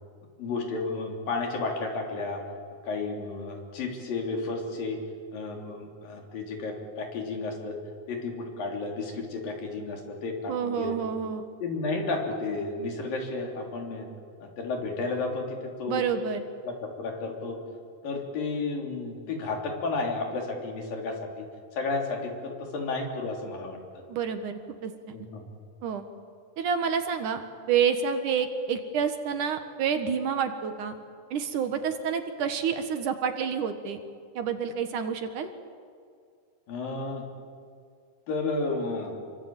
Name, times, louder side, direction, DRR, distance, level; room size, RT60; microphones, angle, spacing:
voice 1, 0.4-2.4 2.9-5.0 5.3-7.8 8.1-11.0 11.6-14.1 14.4-16.0 16.6-17.6 18.0-21.5 21.7-24.0 25.1-25.4 36.7-37.2 38.3-39.2, left 3 dB, 70° left, 2 dB, 5.1 m, -32 dB
voice 2, 10.5-11.5 15.9-16.5 24.1-25.2 25.8-26.1 26.6-30.9 31.3-34.0 34.4-35.5, right 7 dB, 65° right, 8 dB, 2.7 m, -28 dB
27.5 x 24.0 x 8.9 m, 2.2 s
omnidirectional pair, 4.2 m